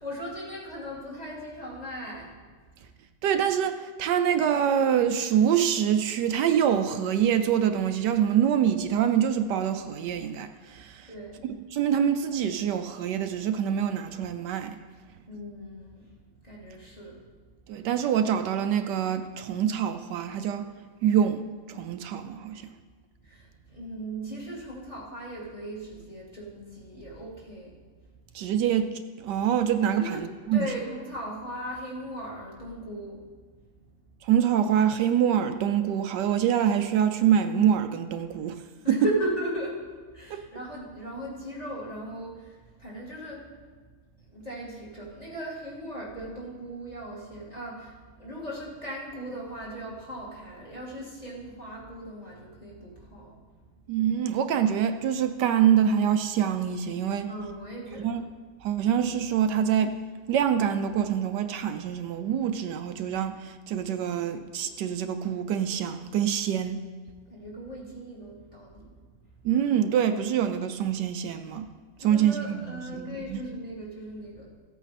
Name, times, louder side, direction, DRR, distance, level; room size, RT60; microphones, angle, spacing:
voice 1, 0.0-2.8 11.1-11.5 15.3-16.1 16.4-17.3 17.6-17.7 23.2-27.8 30.0-30.3 30.5-33.3 38.8-43.6 44.3-53.7 57.3-58.2 67.3-68.9 72.0-74.6, equal, 20° left, -4 dB, 2.5 m, -38 dB
voice 2, 3.2-11.1 11.5-14.8 17.7-20.7 21.0-22.7 28.3-28.9 29.2-30.7 34.2-38.6 38.9-39.1 40.3-40.4 53.9-57.3 58.0-58.2 58.6-60.0 60.3-66.8 69.4-71.7 72.0-73.4, right 9 dB, 80° right, 8 dB, 1.2 m, -25 dB
15.5 x 8.2 x 4.2 m, 1.4 s
omnidirectional pair, 1.9 m